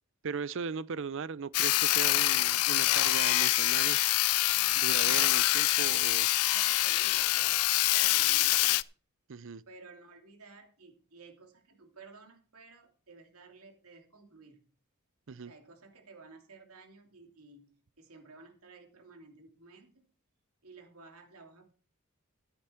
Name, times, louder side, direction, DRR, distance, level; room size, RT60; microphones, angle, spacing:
voice 1, 0.2-4.0 4.8-6.3 9.3-9.6 15.3-15.5, right 5 dB, 60° right, 0.5 m, -38 dB
Sawing, 1.5-8.8, left 17 dB, 90° left, 0.4 m, -26 dB
voice 2, 6.4-7.6 7.9-8.7 9.7-14.6 15.5-17.7 18.0-20.1 20.6-21.7, right 3 dB, 85° right, 3.0 m, -54 dB
13.0 x 9.6 x 4.4 m
head